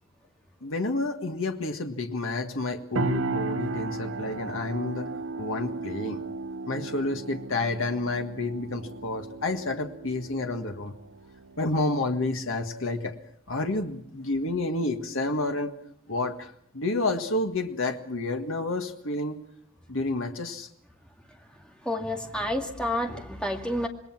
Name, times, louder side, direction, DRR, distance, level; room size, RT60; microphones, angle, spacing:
voice 1, 0.6-5.1 5.4-6.2 6.7-10.9 11.6-13.2 13.5-15.7 16.1-19.4 19.9-20.7, left 2 dB, 70° left, 5 dB, 1.7 m, -29 dB
sound 1, 3.0-12.7, right 3 dB, 70° right, 1.0 m, -35 dB
voice 2, 21.8-23.9, left 1 dB, 5° left, 2 dB, 2.2 m, -29 dB
27.0 x 20.5 x 6.0 m, 0.68 s
head